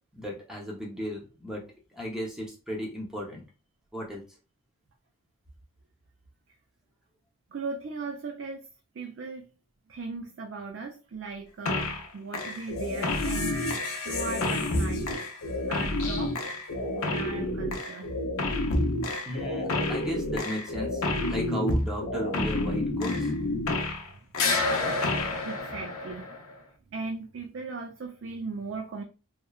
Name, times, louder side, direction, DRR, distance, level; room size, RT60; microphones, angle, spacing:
voice 1, 0.1-1.6 1.9-3.4 3.9-4.2 19.3-23.3, equal, 5° right, -3 dB, 0.6 m, -35 dB
voice 2, 7.5-8.7 8.9-9.5 9.9-15.3 15.7-16.4 17.0-18.1 24.7-24.8 25.4-26.3 26.9-29.0, right 4 dB, 60° right, 3 dB, 0.4 m, -38 dB
sound 1, 11.7-12.1 12.3-24.1 24.3-26.5, left 2 dB, 80° left, 0.6 m, -29 dB
3.0 x 2.1 x 2.3 m, 0.32 s
head